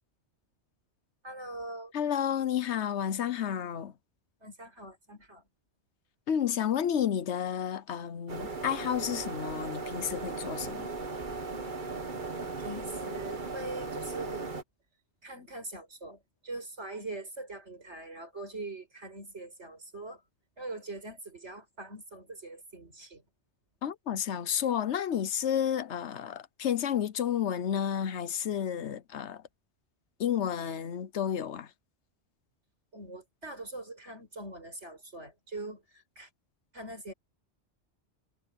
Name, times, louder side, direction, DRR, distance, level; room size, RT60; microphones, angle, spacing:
voice 1, 1.2-1.9 4.4-5.4 12.4-14.5 15.2-20.2 20.6-23.2 32.9-36.3 36.7-37.1, right 2 dB, 85° right, 6.1 m, -42 dB
voice 2, 1.9-3.9 6.3-10.9 23.8-29.4 30.2-31.7, left 9 dB, 80° left, 1.1 m, -31 dB
sound 1, 8.3-14.6, right 3 dB, 45° right, 1.3 m, -37 dB
omnidirectional pair, 1.1 m